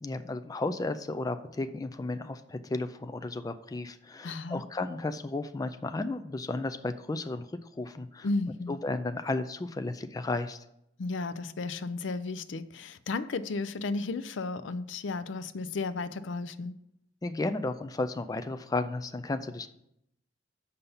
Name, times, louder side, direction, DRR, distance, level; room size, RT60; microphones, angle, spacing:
voice 1, 0.0-7.5 7.8-8.3 8.7-10.6 17.2-19.7, left 2 dB, 20° left, 9 dB, 0.3 m, -33 dB
voice 2, 4.2-4.6 8.2-8.8 11.0-16.7, left 3 dB, 75° left, 13 dB, 0.5 m, -34 dB
6.7 x 5.6 x 7.0 m, 0.79 s
head